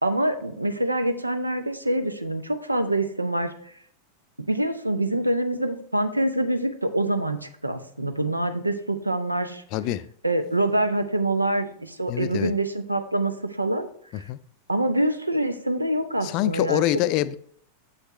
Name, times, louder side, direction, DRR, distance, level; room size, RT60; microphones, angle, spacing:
voice 1, 0.0-3.5 4.5-9.6 10.2-13.9 14.1-14.2 14.7-16.8, right 1 dB, 85° right, 10 dB, 0.5 m, -25 dB
voice 2, 9.7-10.0 12.1-12.5 14.3-14.4 16.2-17.3, left 14 dB, 40° left, 16 dB, 0.3 m, -25 dB
7.2 x 6.5 x 3.1 m, 0.63 s
figure-of-eight pair, 90°, 0 cm